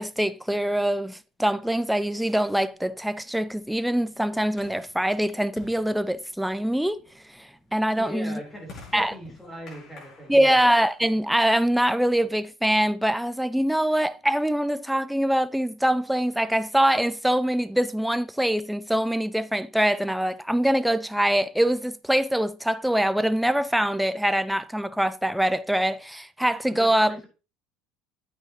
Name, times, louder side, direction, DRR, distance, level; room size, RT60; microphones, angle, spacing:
voice 1, 0.0-7.0 7.4-8.4 8.9-9.1 10.3-27.2, right 1 dB, 5° right, 0.5 m, -24 dB
sound 1, 1.9-12.3, left 3 dB, 50° left, 6.1 m, -52 dB
voice 2, 7.9-10.6 26.7-27.3, equal, 15° left, 3.6 m, -40 dB
9.0 x 8.9 x 2.9 m
hypercardioid pair, 70°, 0 cm